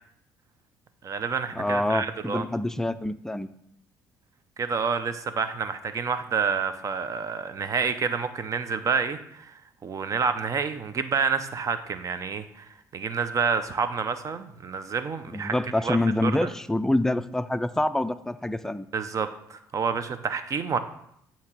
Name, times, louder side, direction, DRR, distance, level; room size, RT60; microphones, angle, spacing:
voice 1, 1.0-2.4 4.6-9.5 9.8-12.7 12.9-15.5 15.8-16.5 18.9-20.8, right 5 dB, 40° right, 10 dB, 0.7 m, -28 dB
voice 2, 1.5-3.5 15.3-18.9, left 1 dB, 5° left, 11 dB, 0.4 m, -26 dB
8.5 x 2.9 x 6.1 m, 0.73 s
cardioid pair, 85°, 8 cm